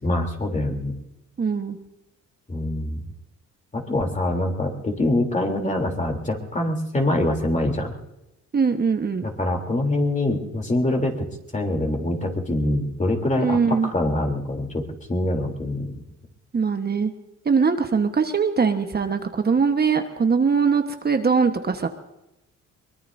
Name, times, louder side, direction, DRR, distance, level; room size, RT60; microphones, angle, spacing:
voice 1, 0.0-0.9 2.5-3.0 3.7-7.9 9.2-11.3 11.5-14.8 15.1-16.0, left 1 dB, 25° left, 1 dB, 3.3 m, -24 dB
voice 2, 1.4-1.8 8.5-9.2 13.4-13.9 16.5-17.1 17.4-21.9, right 5 dB, 30° right, 6 dB, 1.3 m, -21 dB
23.5 x 20.5 x 2.7 m, 0.89 s
cardioid pair, 90°, 30 cm